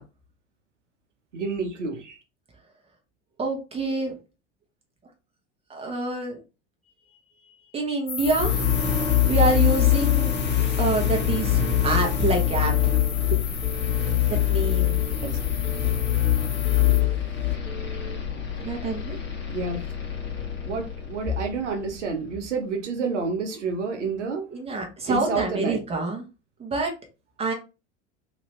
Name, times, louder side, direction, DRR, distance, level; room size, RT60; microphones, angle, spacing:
voice 1, 1.3-2.2 15.2-15.4 19.5-19.8 20.6-24.5 25.1-25.8, right 4 dB, 75° right, 0.8 m, -29 dB
voice 2, 3.4-4.1 5.7-6.4 7.7-8.7 9.2-10.4 10.8-13.0 13.3-13.4 14.3-15.0 18.6-19.2 24.5-26.2 26.6-26.9 27.4-27.5, right 3 dB, 15° right, 1.1 m, -27 dB
sound 1, 8.1-17.0, left 5 dB, 85° left, 0.6 m, -36 dB
sound 2, 8.2-22.1, left 11 dB, 30° left, 1.1 m, -24 dB
Telephone, 10.6-11.1 11.6-12.1 12.6-13.1 13.6-14.1 14.6-15.1 15.6-16.2 16.6-17.2 17.7-18.2, left 1 dB, 5° left, 0.4 m, -41 dB
2.9 x 2.8 x 3.1 m
figure-of-eight pair, 75°, 36 cm